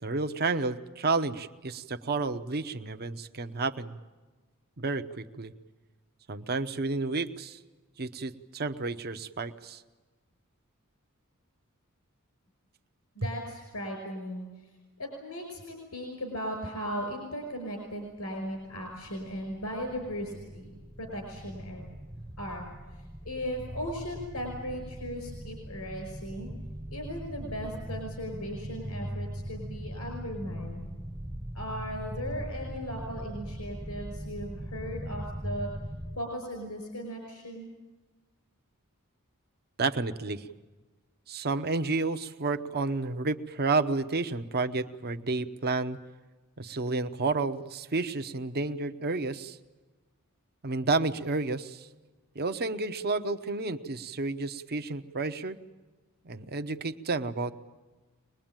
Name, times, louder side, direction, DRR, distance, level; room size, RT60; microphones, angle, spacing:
voice 1, 0.0-4.0 4.8-5.5 6.3-7.6 8.0-9.8 39.8-40.5 41.3-46.0 46.6-49.6 50.6-51.9 52.3-55.6 56.2-57.5, right 3 dB, 45° right, 9 dB, 0.9 m, -31 dB
voice 2, 13.2-14.5 15.0-21.9 22.4-26.5 26.9-30.9 31.5-35.7 36.2-37.7, equal, 85° left, 3 dB, 5.4 m, -37 dB
sound 1, 18.2-36.2, equal, 10° right, 0.9 m, -40 dB
24.0 x 20.5 x 9.0 m, 1.2 s
head